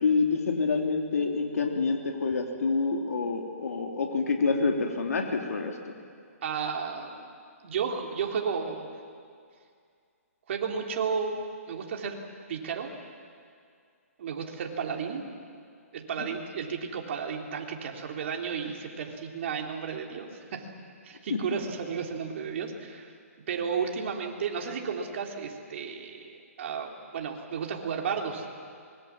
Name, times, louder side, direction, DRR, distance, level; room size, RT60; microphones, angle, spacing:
voice 1, 0.0-5.9 16.2-16.3 21.3-21.4, left 4 dB, 75° left, 2 dB, 3.1 m, -27 dB
voice 2, 6.4-7.3 7.6-8.9 10.5-11.3 11.7-12.2 12.5-12.9 14.2-15.2 15.9-20.7 21.0-23.1 23.5-28.5, right 6 dB, 50° right, 1 dB, 3.4 m, -33 dB
25.0 x 22.0 x 7.4 m, 2.2 s
hypercardioid pair, 150°, 8 cm